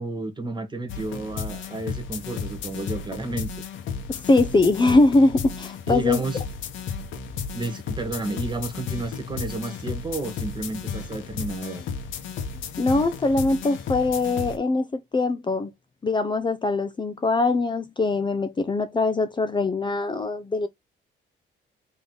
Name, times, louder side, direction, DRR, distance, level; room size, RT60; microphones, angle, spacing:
voice 1, 0.0-3.5 5.9-6.4 7.5-11.8, right 2 dB, 20° right, 1.4 m, -31 dB
sound 1, 0.9-14.6, left 6 dB, 75° left, 1.2 m, -33 dB
voice 2, 4.1-6.2 12.8-15.7 16.0-20.7, left 2 dB, 25° left, 0.6 m, -22 dB
3.6 x 3.1 x 3.9 m
cardioid pair, 90°, 20 cm